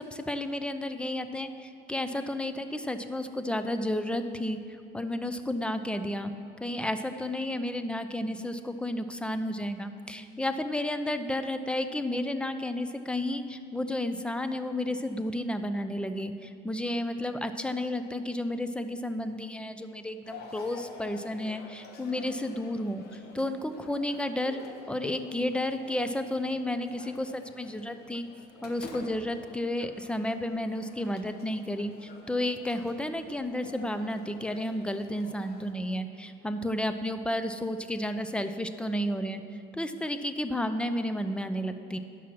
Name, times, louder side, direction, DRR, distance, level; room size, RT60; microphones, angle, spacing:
voice 1, 0.0-4.6 4.9-6.3 6.6-23.0 23.4-24.6 24.9-28.3 28.6-39.4 39.7-42.0, left 1 dB, 5° left, 9 dB, 0.5 m, -32 dB
sound 1, 20.2-35.7, left 4 dB, 70° left, 1.1 m, -49 dB
10.0 x 6.1 x 5.9 m, 2.5 s
cardioid pair, 110°, 17 cm